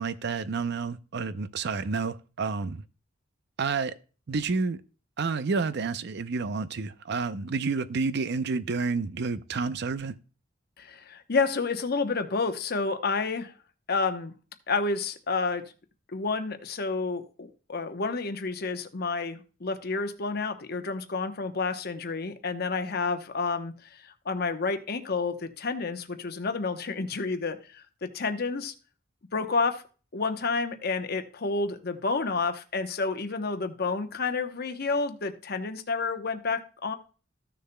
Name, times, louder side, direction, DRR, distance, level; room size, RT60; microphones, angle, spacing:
voice 1, 0.0-2.8 3.6-3.9 4.3-4.8 5.2-10.1, right 4 dB, 60° right, 0.5 m, -29 dB
voice 2, 10.8-13.5 13.9-14.3 14.7-15.6 16.1-28.7 29.3-29.8 30.1-36.9, left 4 dB, 55° left, 0.9 m, -30 dB
14.5 x 6.8 x 2.2 m
head